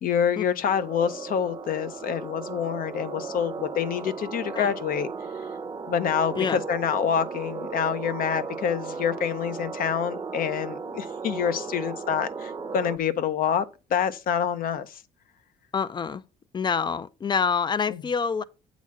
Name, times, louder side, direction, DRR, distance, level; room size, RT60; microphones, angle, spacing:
voice 1, 0.0-5.1 5.9-13.6 13.9-15.0 17.9-18.0, left 8 dB, 55° left, 0.8 m, -27 dB
The Most Terrifying Sounds Ever, 0.6-13.0, right 5 dB, 25° right, 0.8 m, -36 dB
voice 2, 15.7-16.2 16.5-18.4, left 6 dB, 25° left, 0.5 m, -26 dB
8.4 x 4.1 x 4.7 m
cardioid pair, 110°, 17 cm